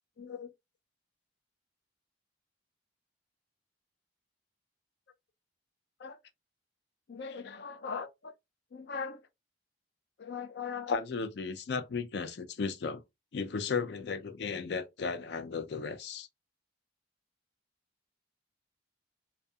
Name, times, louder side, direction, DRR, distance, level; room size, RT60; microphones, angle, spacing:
voice 1, 0.2-0.5 6.0-6.2 7.1-8.3 8.7-9.2 10.2-13.0 13.3-16.3, left 5 dB, 55° left, 0.4 m, -36 dB
2.6 x 2.2 x 2.3 m
head